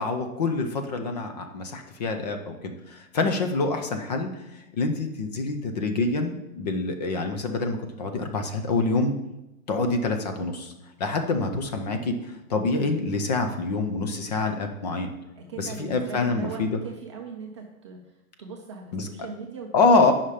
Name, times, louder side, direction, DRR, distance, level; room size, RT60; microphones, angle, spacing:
voice 1, 0.0-9.1 9.7-10.7 11.0-15.1 15.6-16.7 18.9-19.1 19.7-20.1, left 3 dB, 30° left, 6 dB, 0.7 m, -26 dB
voice 2, 15.3-19.7 20.0-20.1, right 4 dB, 20° right, 0 dB, 0.5 m, -39 dB
8.9 x 5.7 x 4.9 m, 0.94 s
hypercardioid pair, 165°, 43 cm